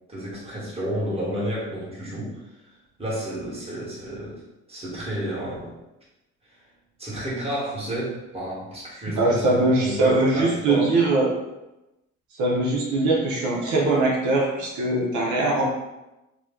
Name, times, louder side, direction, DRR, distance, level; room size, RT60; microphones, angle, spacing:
voice 1, 0.1-4.4 4.7-5.7 6.4-6.6 7.0-10.9, equal, 20° right, -7 dB, 1.3 m, -31 dB
voice 2, 9.1-11.3 12.3-15.7, right 2 dB, 75° right, -3 dB, 0.7 m, -21 dB
2.9 x 2.1 x 3.5 m, 0.98 s
cardioid pair, 90°, 30 cm